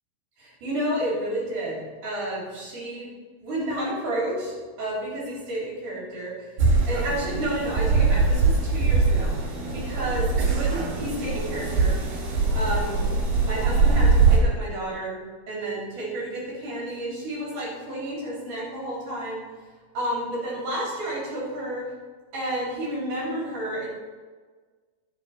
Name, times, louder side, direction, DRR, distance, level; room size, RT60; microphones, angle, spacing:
voice 1, 0.4-3.1 3.4-6.5 6.9-12.0 12.5-13.0 13.4-15.2 15.5-19.4 19.9-21.8 22.3-23.9, right 1 dB, 55° right, -5 dB, 4.8 m, -31 dB
sound 1, 6.6-14.4, right 4 dB, 75° right, 4.0 m, -22 dB
11.5 x 8.9 x 4.3 m, 1.4 s
omnidirectional pair, 4.3 m